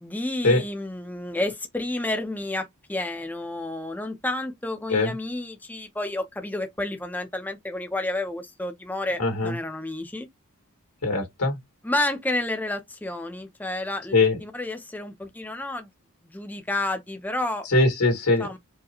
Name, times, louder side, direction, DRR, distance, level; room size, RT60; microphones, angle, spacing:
voice 1, 0.0-10.3 11.8-15.9 16.3-17.7 18.4-18.6, left 2 dB, 10° left, 0.6 m, -30 dB
voice 2, 9.2-9.5 11.0-11.6 14.1-14.4 17.7-18.6, left 2 dB, 90° left, 2.0 m, -21 dB
4.7 x 2.2 x 2.9 m
head